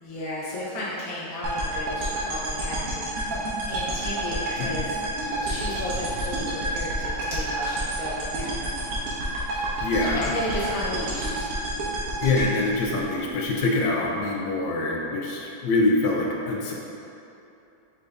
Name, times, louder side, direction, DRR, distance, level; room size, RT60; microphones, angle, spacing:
voice 1, 0.0-4.9 5.4-9.0 10.2-11.5, left 1 dB, 55° left, -7 dB, 0.3 m, -34 dB
sound 1, 1.4-13.6, right 1 dB, 60° right, 1.1 m, -29 dB
sound 2, 4.4-13.2, right 1 dB, 35° right, 0.7 m, -44 dB
voice 2, 9.8-10.3 12.2-16.7, left 2 dB, 85° left, -2 dB, 1.3 m, -25 dB
5.3 x 2.6 x 3.4 m, 2.8 s
omnidirectional pair, 2.0 m